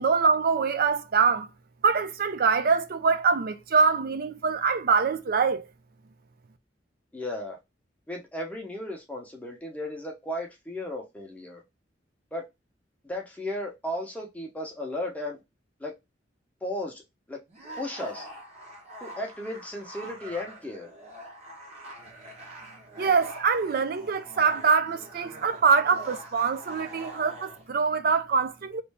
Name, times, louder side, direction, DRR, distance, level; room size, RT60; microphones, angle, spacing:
voice 1, 0.0-1.5 1.8-5.7 23.0-28.8, right 5 dB, 55° right, 0.4 m, -24 dB
voice 2, 7.1-7.6 8.1-11.6 12.3-12.4 13.0-15.4 15.8-15.9 16.6-17.0 17.3-17.4 17.8-18.3 19.0-20.9, left 1 dB, 10° left, 0.8 m, -35 dB
sound 1, 17.5-27.7, right 1 dB, 40° right, 1.1 m, -44 dB
3.1 x 2.5 x 3.3 m
head